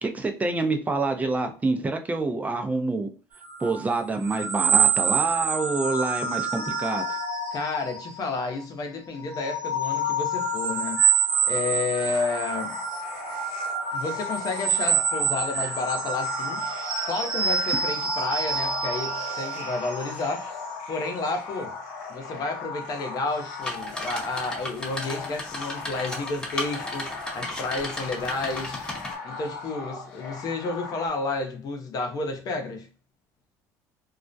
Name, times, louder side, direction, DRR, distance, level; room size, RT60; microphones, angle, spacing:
voice 1, 0.0-3.1 3.6-7.0, right 3 dB, 20° right, 0.5 m, -27 dB
sound 1, 3.4-8.6 9.1-21.4, right 5 dB, 75° right, 0.6 m, -27 dB
voice 2, 7.5-11.0 11.5-12.8 13.9-16.7 17.0-20.4 20.9-21.7 22.1-28.8 29.2-32.9, left 3 dB, 50° left, 0.7 m, -31 dB
sound 2, 11.9-31.1, left 4 dB, 85° left, 0.6 m, -38 dB
sound 3, 23.6-29.1, left 1 dB, 10° left, 0.7 m, -35 dB
2.3 x 2.0 x 2.5 m
supercardioid pair, 95°, 8 cm